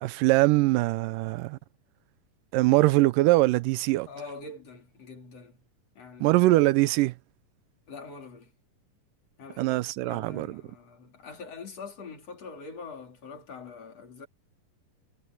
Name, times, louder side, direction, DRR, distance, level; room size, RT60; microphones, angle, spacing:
voice 1, 0.0-1.6 2.5-4.1 6.2-7.1 9.6-10.6, right 19 dB, 85° right, 2.2 m, -22 dB
voice 2, 4.1-5.6 6.0-6.4 7.9-8.5 9.4-14.3, left 4 dB, 50° left, 4.4 m, -44 dB
omnidirectional pair, 3.8 m